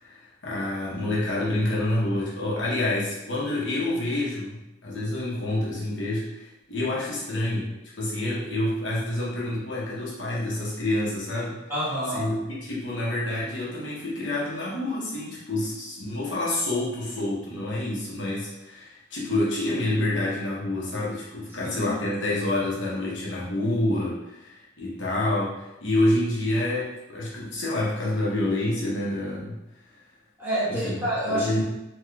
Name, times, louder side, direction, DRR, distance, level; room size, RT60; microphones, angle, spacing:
voice 1, 0.0-7.7 8.0-11.6 12.1-29.6 30.7-31.0 31.3-31.6, left 1 dB, 90° left, -6 dB, 1.0 m, -28 dB
voice 2, 11.7-12.3 21.6-21.9 30.4-31.6, equal, 15° right, -11 dB, 1.4 m, -28 dB
3.2 x 3.0 x 2.3 m, 0.94 s
head